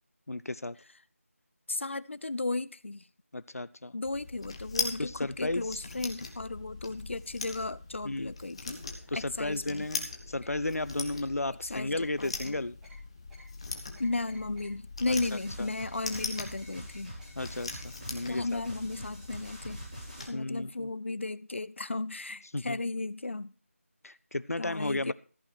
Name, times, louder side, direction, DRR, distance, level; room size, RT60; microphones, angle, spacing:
voice 1, 0.3-0.8 3.3-3.9 5.0-5.8 8.0-8.3 9.1-12.8 15.1-15.2 15.6-15.7 17.4-18.6 20.3-20.9 22.5-22.8 24.0-25.1, left 2 dB, 90° left, 0.7 m, -34 dB
voice 2, 1.7-3.1 3.9-8.8 9.1-9.9 11.6-12.5 14.0-17.2 18.3-19.8 20.2-23.5 24.6-25.1, left 2 dB, 55° left, 0.7 m, -35 dB
sound 1, 4.0-20.3, left 3 dB, 25° left, 1.4 m, -41 dB
sound 2, 8.4-9.1 9.5-11.5 11.9-12.1 12.4-12.5 12.8-13.0 13.3-13.4 13.9-14.7 15.3-15.4 15.8-16.9 17.2-17.3 17.5-17.8 18.2-18.3 18.7-18.8 19.2-19.3, equal, 5° right, 2.2 m, -57 dB
sound 3, 15.1-20.2, right 1 dB, 30° right, 5.0 m, -46 dB
14.5 x 8.7 x 4.4 m
figure-of-eight pair, 170°, 8 cm